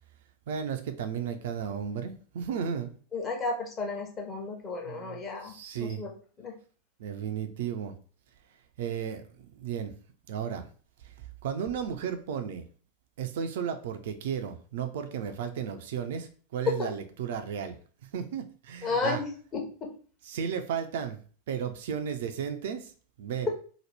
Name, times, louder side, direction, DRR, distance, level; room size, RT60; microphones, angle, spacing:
voice 1, 0.5-2.9 4.9-6.0 7.0-7.9 8.8-9.2 9.5-9.9 10.3-10.7 11.0-11.1 11.4-12.7 13.2-17.8 18.1-19.2 20.3-21.2 21.5-22.9 23.2-23.5, right 7 dB, 55° right, 7 dB, 0.3 m, -34 dB
voice 2, 3.1-5.5 5.8-6.1 6.4-6.5 16.7-16.9 18.8-19.9 23.5-23.6, left 4 dB, 25° left, 1 dB, 0.8 m, -32 dB
2.9 x 2.0 x 3.3 m, 0.41 s
figure-of-eight pair, 90°, 0 cm